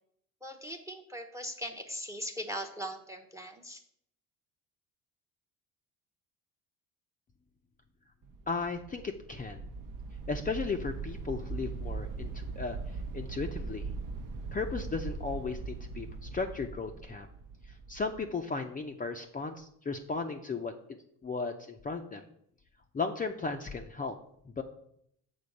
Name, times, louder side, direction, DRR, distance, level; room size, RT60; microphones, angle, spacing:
voice 1, 0.4-3.8, equal, 10° right, 7 dB, 0.8 m, -40 dB
sound 1, 8.2-18.2, right 4 dB, 55° right, 0.9 m, -40 dB
voice 2, 8.5-9.6 10.3-12.8 13.1-13.8 14.5-17.3 17.9-20.7 21.2-22.2 22.9-24.1 24.5-24.6, left 4 dB, 20° left, 4 dB, 0.6 m, -35 dB
7.0 x 4.0 x 6.5 m, 0.70 s
supercardioid pair, 90°, 39 cm